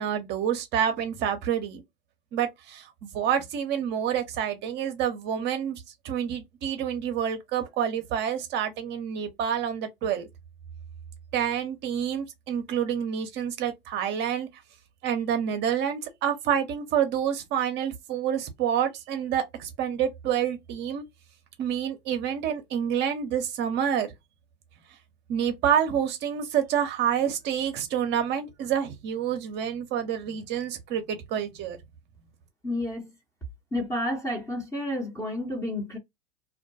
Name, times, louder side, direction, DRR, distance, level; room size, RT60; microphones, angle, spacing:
voice 1, 0.0-1.8 2.3-10.3 11.3-14.5 15.0-21.0 21.6-24.1 25.3-31.8, right 9 dB, 35° right, 0.6 m, -28 dB
voice 2, 32.6-33.1 33.7-36.0, left 1 dB, 10° left, 0.7 m, -30 dB
2.3 x 2.1 x 2.6 m
hypercardioid pair, 105°, 29 cm